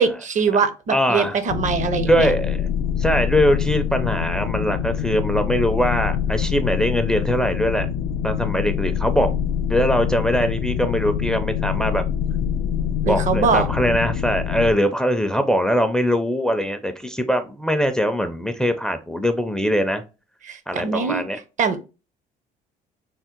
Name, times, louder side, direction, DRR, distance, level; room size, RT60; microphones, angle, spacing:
voice 1, 0.0-2.3 13.0-13.7 20.5-21.2 21.6-21.8, right 5 dB, 45° right, 11 dB, 0.6 m, -22 dB
voice 2, 0.9-1.4 2.0-2.7 3.0-7.9 8.2-9.3 9.7-12.0 13.1-20.0 20.7-21.4, equal, 5° left, 8 dB, 0.4 m, -22 dB
sound 1, 1.5-14.7, left 8 dB, 85° left, 0.4 m, -25 dB
3.5 x 2.1 x 4.3 m, 0.30 s
cardioid pair, 110°, 17 cm